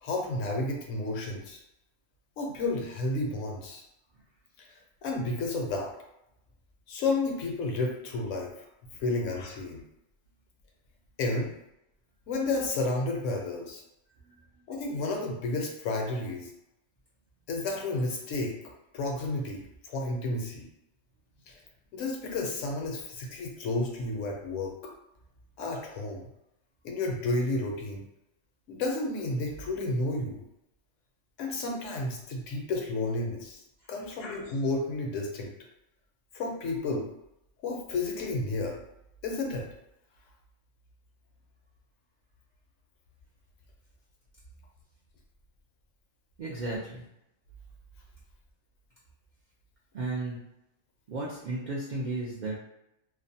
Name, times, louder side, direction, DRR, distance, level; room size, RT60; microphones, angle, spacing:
voice 1, 0.0-1.6 2.4-3.8 4.6-4.7 5.0-5.9 6.9-8.5 9.0-9.8 11.2-11.5 12.3-13.8 14.7-16.5 17.5-18.5 18.9-20.7 21.5-21.6 21.9-24.9 25.6-26.2 26.8-28.0 28.7-30.5 31.4-33.6 33.9-35.5 36.3-37.1 37.6-38.8 39.2-39.7, left 2 dB, 75° left, 0 dB, 0.9 m, -31 dB
voice 2, 46.4-47.0 49.9-50.4 51.1-52.6, right 2 dB, 70° right, -6 dB, 0.4 m, -34 dB
2.5 x 2.1 x 2.6 m, 0.86 s
omnidirectional pair, 1.3 m